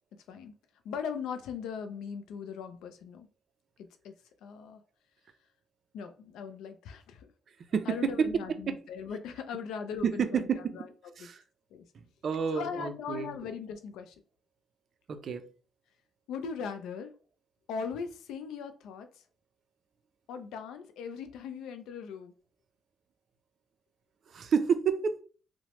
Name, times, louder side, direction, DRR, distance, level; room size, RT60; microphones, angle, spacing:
voice 1, 0.1-0.5 0.8-3.3 4.0-4.1 4.4-4.8 5.9-7.3 7.9-10.5 10.7-10.9 11.2-11.3 11.7-11.8 12.5-14.1 16.3-17.1 17.7-19.1 20.3-22.3, left 6 dB, 85° left, 0.4 m, -39 dB
voice 2, 7.7-8.3 8.7-8.8 10.0-10.9 11.2-11.4 12.2-13.3 15.1-15.5 24.3-25.2, right 6 dB, 55° right, 0.4 m, -29 dB
3.0 x 2.1 x 2.9 m
cardioid pair, 90°, 0 cm